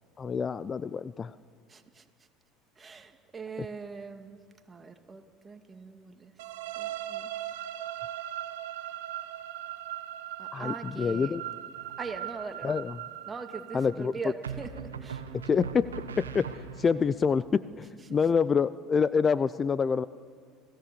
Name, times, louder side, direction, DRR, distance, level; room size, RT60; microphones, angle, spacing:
voice 1, 0.2-1.4 10.5-11.4 12.6-12.9 13.7-14.1 15.3-20.0, left 6 dB, 30° left, 17 dB, 0.5 m, -27 dB
voice 2, 1.7-2.3 2.8-4.4 4.7-6.5 6.8-7.5 10.4-11.4 12.0-12.8 13.3-15.2 18.0-18.2, right 4 dB, 25° right, 6 dB, 2.3 m, -42 dB
sound 1, 6.4-14.2, right 12 dB, 75° right, 1.2 m, -39 dB
sound 2, 11.8-12.3 14.4-17.1, right 6 dB, 90° right, 1.3 m, -40 dB
29.5 x 17.5 x 7.0 m, 2.1 s
hypercardioid pair, 70°, 0 cm